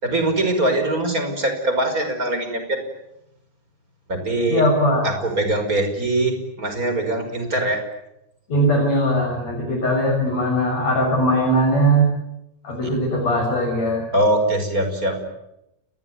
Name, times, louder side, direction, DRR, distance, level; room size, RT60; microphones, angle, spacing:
voice 1, 0.0-2.8 4.1-4.6 5.0-7.8 12.8-12.9 14.1-15.2, right 1 dB, 25° right, 7 dB, 5.8 m, -22 dB
voice 2, 4.5-5.1 8.5-12.1 12.6-14.0, right 1 dB, 55° left, -1 dB, 8.4 m, -20 dB
29.5 x 21.5 x 9.5 m, 0.85 s
omnidirectional pair, 3.6 m